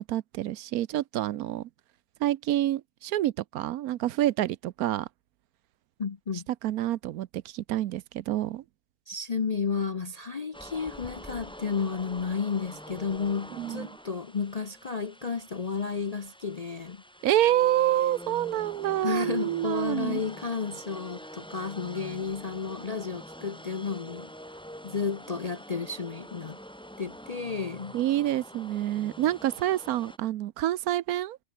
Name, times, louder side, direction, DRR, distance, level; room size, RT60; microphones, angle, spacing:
voice 1, 0.0-1.7 2.2-5.1 6.6-8.6 13.6-13.9 17.2-20.2 27.9-31.4, right 13 dB, 75° right, 1.1 m, -27 dB
voice 2, 6.0-6.4 9.1-17.0 19.0-24.3 24.8-26.6 27.0-28.0, left 5 dB, 45° left, 0.5 m, -32 dB
sound 1, 10.5-30.2, equal, 5° left, 5.4 m, -45 dB
omnidirectional pair, 1.6 m